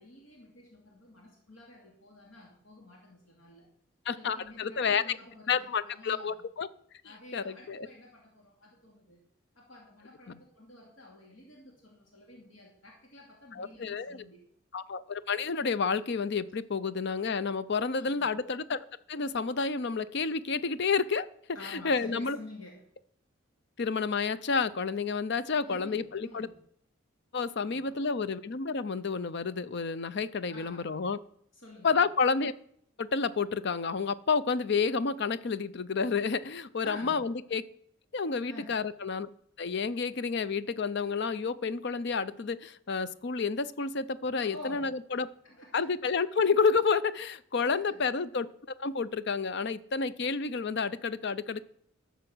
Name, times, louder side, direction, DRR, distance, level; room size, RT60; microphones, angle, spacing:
voice 1, 0.0-3.7 4.1-6.4 7.0-9.2 9.5-14.5 18.0-18.3 21.5-23.0 25.6-26.6 27.6-28.0 30.5-31.0 31.5-32.1 36.8-37.3 38.5-38.8 44.4-45.9 47.7-48.1, left 1 dB, 75° left, -1 dB, 2.6 m, -50 dB
voice 2, 4.1-5.2 5.5-6.7 7.3-7.9 13.5-14.2 14.7-18.8 19.1-21.3 21.7-22.4 23.8-26.5 27.3-31.2 31.8-32.5 33.0-37.6 38.1-39.3 39.6-45.3 45.7-48.5 48.8-51.6, left 5 dB, 55° left, 15 dB, 0.6 m, -30 dB
12.5 x 6.8 x 6.2 m, 0.67 s
head